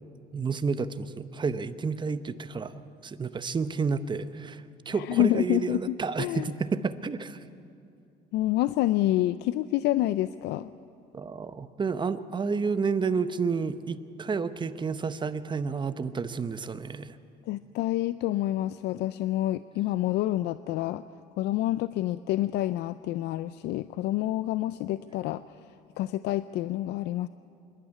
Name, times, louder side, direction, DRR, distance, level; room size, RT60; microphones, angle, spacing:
voice 1, 0.3-7.4 11.1-17.2, right 5 dB, 25° right, 12 dB, 0.9 m, -30 dB
voice 2, 4.9-6.5 8.3-10.7 17.5-21.0 21.4-25.4 26.0-27.3, left 14 dB, 80° left, 14 dB, 0.5 m, -28 dB
26.0 x 12.0 x 9.7 m, 2.5 s
cardioid pair, 110°, 17 cm